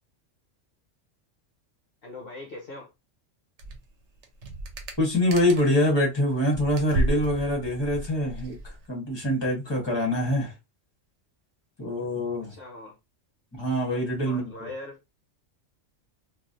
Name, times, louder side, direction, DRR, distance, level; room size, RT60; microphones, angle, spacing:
voice 1, 2.0-2.9 12.5-13.0 14.2-15.0, left 2 dB, 55° left, 0.9 m, -40 dB
sound 1, 3.6-3.9 4.2-5.8 6.2-8.8, right 1 dB, 70° right, 1.0 m, -32 dB
voice 2, 5.0-10.5 11.8-12.6 13.5-14.7, left 1 dB, 20° left, 1.3 m, -25 dB
3.1 x 2.6 x 2.6 m
omnidirectional pair, 1.3 m